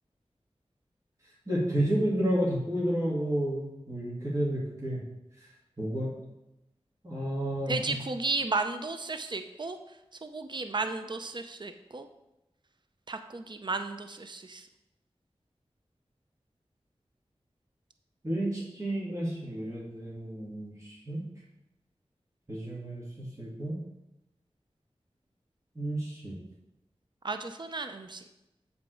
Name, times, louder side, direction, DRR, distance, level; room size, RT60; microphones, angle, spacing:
voice 1, 1.5-5.0 5.8-6.1 7.0-8.0 18.2-21.2 22.5-23.8 25.8-26.4, right 1 dB, 30° right, -6 dB, 2.4 m, -31 dB
voice 2, 7.7-9.8 10.2-12.1 13.1-14.7 27.2-28.2, right 3 dB, 45° right, 8 dB, 0.6 m, -34 dB
7.7 x 4.1 x 6.2 m, 0.92 s
wide cardioid pair, 50°, 11 cm